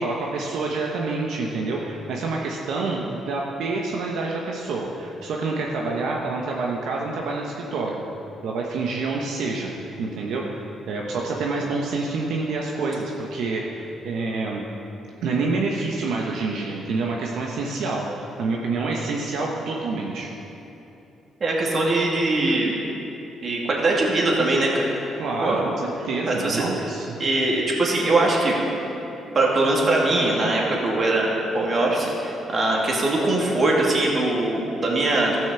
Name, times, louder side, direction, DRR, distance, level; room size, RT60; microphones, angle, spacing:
voice 1, 0.0-8.0 8.4-9.7 10.0-14.6 15.2-20.3 25.2-25.7 26.0-27.2, right 3 dB, 80° right, -1 dB, 1.1 m, -27 dB
voice 2, 21.4-22.8 23.4-24.9 25.4-25.6 26.3-26.6 27.2-28.6 29.3-35.4, right 2 dB, 40° right, -2 dB, 2.6 m, -21 dB
13.5 x 6.3 x 7.0 m, 3.0 s
cardioid pair, 90°, 0 cm